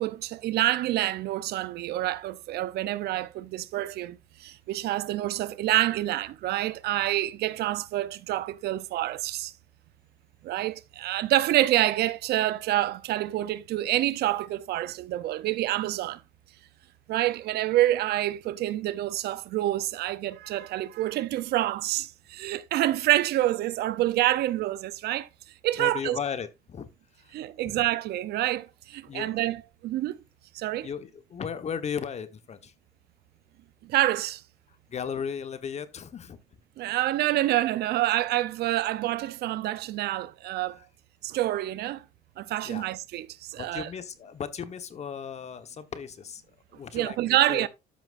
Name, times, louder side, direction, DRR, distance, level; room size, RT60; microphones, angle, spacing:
voice 1, 0.0-9.5 10.4-16.2 17.1-25.3 25.6-26.2 27.3-30.2 30.5-30.9 33.8-34.4 36.8-40.8 41.2-42.0 42.4-43.9 46.9-47.7, right 15 dB, 70° right, 0.7 m, -27 dB
voice 2, 25.8-26.9 27.2-27.4 27.6-27.8 29.0-29.4 30.8-32.7 34.7-36.4 40.7-40.9 42.6-42.9 43.6-46.4 46.7-47.7, left 7 dB, 40° left, 1.3 m, -36 dB
12.5 x 5.9 x 2.6 m
cardioid pair, 110°, 17 cm